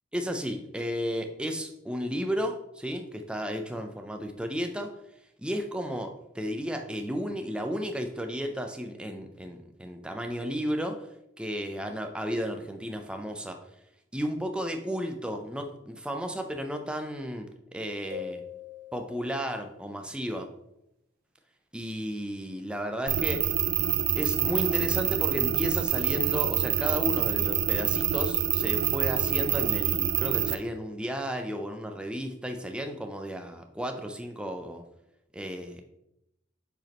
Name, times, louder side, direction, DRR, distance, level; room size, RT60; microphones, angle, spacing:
voice 1, 0.1-4.9 5.4-11.1 11.4-13.6 14.1-18.4 18.9-20.5 21.7-23.5 24.1-34.8 35.3-35.8, equal, 5° right, 4 dB, 0.5 m, -33 dB
sound 1, 18.1-19.6, left 6 dB, 50° right, 1.2 m, -41 dB
sound 2, 23.1-30.5, right 11 dB, 85° right, 0.4 m, -26 dB
7.4 x 5.0 x 3.0 m, 0.82 s
head